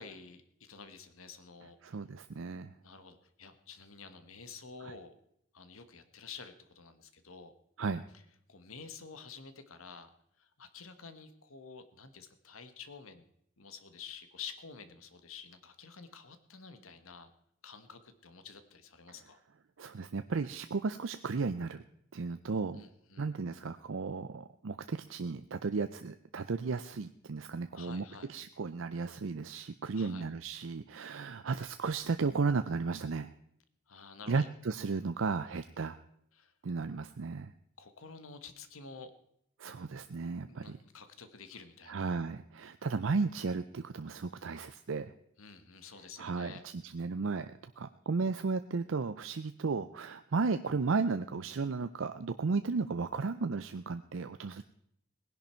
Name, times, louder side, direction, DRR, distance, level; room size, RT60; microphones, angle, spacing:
voice 1, 0.0-1.8 2.8-5.2 5.5-7.5 8.5-10.1 10.4-13.2 13.6-17.3 17.6-19.4 22.7-23.3 27.7-28.3 29.9-30.2 33.9-34.5 36.3-36.5 37.8-39.1 40.5-42.2 45.4-46.6, left 5 dB, 90° left, 10 dB, 1.4 m, -50 dB
voice 2, 1.8-2.7 4.8-4.9 7.8-8.0 19.8-21.8 22.1-22.8 23.2-33.3 34.3-36.0 36.6-37.5 39.6-40.8 41.9-45.1 46.2-54.6, right 4 dB, 70° right, 10 dB, 0.5 m, -34 dB
18.5 x 11.0 x 4.4 m, 0.73 s
head